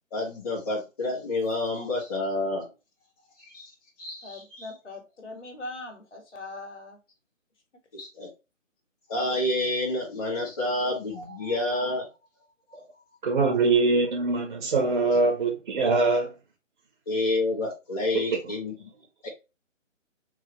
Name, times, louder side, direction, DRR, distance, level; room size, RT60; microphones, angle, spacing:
voice 1, 0.1-2.7 3.4-3.7 4.0-4.7 7.9-8.3 9.1-12.1 17.1-18.9 19.2-19.3, left 2 dB, 30° left, 1.9 m, -29 dB
voice 2, 4.2-7.0, left 2 dB, 65° left, 2.4 m, -41 dB
voice 3, 13.2-16.3, right 3 dB, 35° right, 1.5 m, -23 dB
4.5 x 3.5 x 3.1 m
figure-of-eight pair, 155°, 38 cm